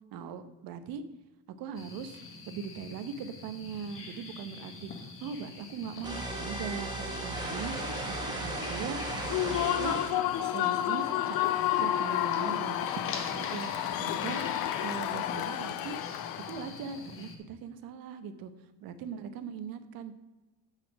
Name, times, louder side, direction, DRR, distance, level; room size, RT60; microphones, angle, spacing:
voice 1, 0.1-1.0 1.5-2.2 2.5-10.0 10.5-14.4 14.8-16.0 16.5-18.5 18.8-20.1, right 6 dB, 65° right, 10 dB, 0.9 m, -40 dB
sound 1, 1.7-17.4, left 3 dB, 35° left, 1.2 m, -44 dB
sound 2, 6.0-10.2, right 1 dB, 10° right, 1.3 m, -35 dB
Human voice / Cheering / Applause, 9.1-16.7, left 12 dB, 65° left, 0.6 m, -31 dB
8.8 x 4.3 x 6.1 m, 1.1 s
cardioid pair, 160°, 37 cm